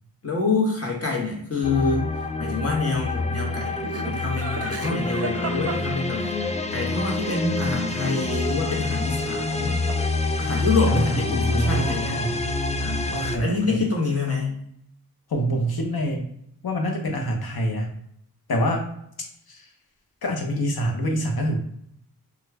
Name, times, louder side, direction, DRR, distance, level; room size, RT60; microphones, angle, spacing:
voice 1, 0.2-3.8 4.1-6.3 6.7-9.8 10.4-12.2 12.8-14.6, left 3 dB, 40° left, -1 dB, 1.2 m, -26 dB
sound 1, 1.6-13.4, left 3 dB, 20° left, 0.3 m, -26 dB
Laughter, 3.8-6.5 9.3-10.1 10.4-10.9, right 4 dB, 40° right, 0.5 m, -35 dB
voice 2, 10.9-12.5 13.1-13.8 15.3-16.3 16.6-17.9 18.5-18.8 19.5-19.7 20.2-21.6, equal, 70° left, 2 dB, 0.9 m, -26 dB
2.9 x 2.4 x 3.4 m, 0.70 s
cardioid pair, 45°, 38 cm